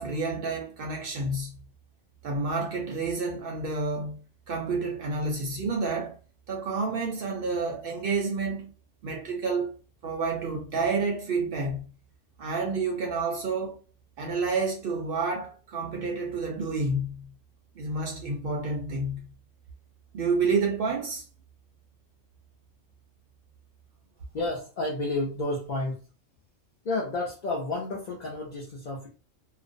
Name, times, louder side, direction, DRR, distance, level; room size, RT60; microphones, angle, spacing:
voice 1, 0.0-1.6 2.2-4.2 4.5-6.2 6.5-8.7 9.0-9.8 10.0-11.9 12.4-13.8 14.2-17.3 17.8-19.3 20.1-21.3, right 3 dB, 60° right, 0.6 m, -29 dB
voice 2, 24.3-26.0 26.8-29.1, left 2 dB, 50° left, 0.5 m, -31 dB
2.4 x 2.0 x 2.5 m
omnidirectional pair, 1.3 m